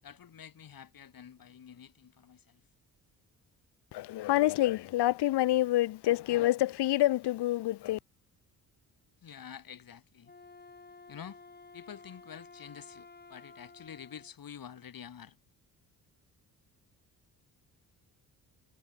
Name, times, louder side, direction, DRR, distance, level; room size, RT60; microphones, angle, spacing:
voice 1, 0.0-2.6 9.2-10.3 11.1-11.4 11.7-15.4, left 8 dB, 60° left, 7.6 m, -48 dB
voice 2, 3.9-8.0, left 15 dB, 80° left, 1.2 m, -27 dB
Wind instrument woodwind instrument, 10.2-14.3, left 4 dB, 25° left, 3.1 m, -53 dB
cardioid pair, 80°, 40 cm